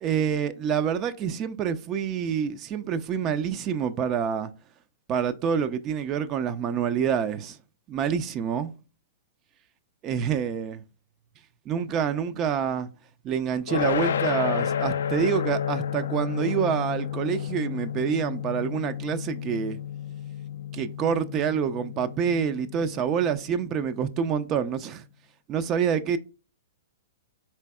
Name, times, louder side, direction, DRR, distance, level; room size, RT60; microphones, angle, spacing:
voice 1, 0.0-4.5 5.1-7.6 7.9-8.7 10.0-10.8 11.7-12.9 13.2-19.8 20.7-25.0 25.5-26.2, right 7 dB, 30° right, 0.3 m, -27 dB
sound 1, 13.7-24.7, left 8 dB, 65° left, 0.3 m, -31 dB
4.3 x 3.9 x 2.2 m
figure-of-eight pair, 110°, 0 cm